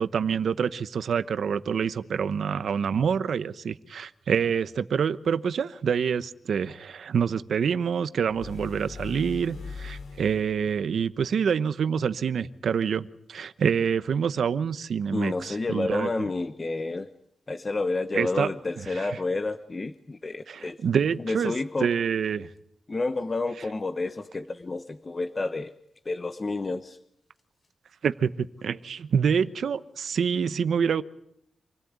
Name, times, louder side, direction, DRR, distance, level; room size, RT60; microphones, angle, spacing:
voice 1, 0.0-16.1 18.1-18.5 18.9-19.1 20.5-21.5 21.8-22.5 28.0-31.0, right 7 dB, 85° right, 13 dB, 1.0 m, -26 dB
sound 1, 8.3-10.7, left 4 dB, 85° left, 5.1 m, -40 dB
voice 2, 15.1-17.1 17.5-20.8 21.2-21.9 22.9-25.7 26.0-27.0, left 3 dB, 35° left, 10 dB, 1.0 m, -30 dB
27.5 x 17.5 x 9.5 m, 0.73 s
wide cardioid pair, 100°, 0 cm